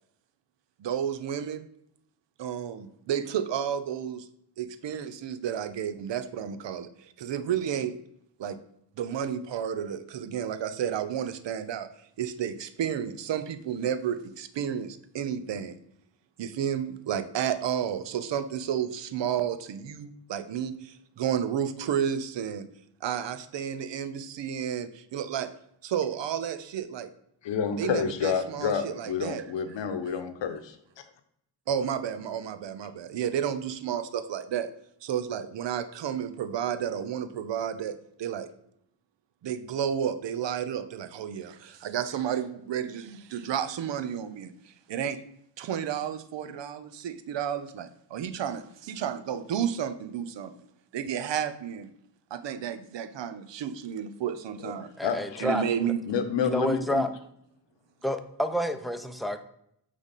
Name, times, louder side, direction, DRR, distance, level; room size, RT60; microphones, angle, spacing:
voice 1, 0.8-1.7 2.4-4.3 4.6-7.9 8.4-8.6 9.0-11.9 12.2-15.8 16.4-22.7 23.0-25.5 25.8-27.1 27.8-29.4 31.7-34.7 35.0-38.5 39.4-45.2 45.6-50.5 50.9-51.9 52.3-54.9 55.4-56.0, right 9 dB, 80° right, 0.6 m, -31 dB
voice 2, 27.4-30.8 54.6-54.7 55.0-55.5 56.1-57.1, left 7 dB, 90° left, 0.8 m, -29 dB
voice 3, 55.0-55.9 56.4-57.1 58.0-59.4, equal, ahead, 0.6 m, -29 dB
8.7 x 3.4 x 4.1 m
cardioid pair, 80°, 43 cm